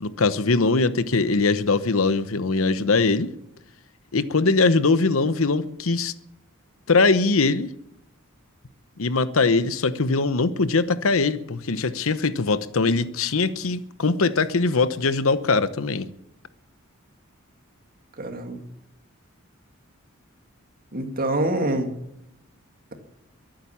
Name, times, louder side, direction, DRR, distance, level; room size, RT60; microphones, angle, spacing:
voice 1, 0.0-3.3 4.1-6.1 6.9-7.7 9.0-16.1, left 3 dB, 75° left, 13 dB, 0.9 m, -21 dB
voice 2, 18.2-18.6 20.9-21.9, right 1 dB, 45° right, 5 dB, 2.2 m, -25 dB
22.5 x 9.0 x 7.1 m, 0.81 s
head